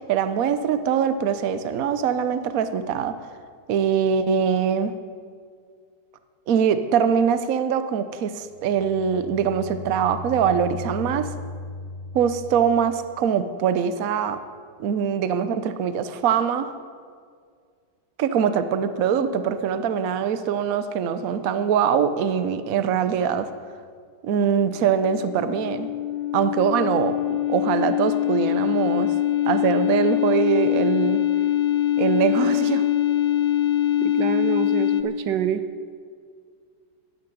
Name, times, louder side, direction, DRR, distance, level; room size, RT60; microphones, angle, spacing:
voice 1, 0.0-3.2 3.7-4.9 6.5-11.3 12.1-14.4 14.8-16.7 18.2-23.5 24.2-25.9 26.3-29.1 29.5-31.2 32.0-32.8, right 7 dB, 60° right, 11 dB, 1.1 m, -23 dB
sound 1, 8.4-13.2, left 2 dB, 30° left, 3.2 m, -37 dB
sound 2, 24.8-35.0, left 12 dB, 90° left, 1.5 m, -23 dB
voice 2, 34.0-35.6, right 10 dB, 80° right, 11 dB, 1.4 m, -26 dB
14.0 x 9.9 x 9.2 m, 2.1 s
omnidirectional pair, 1.9 m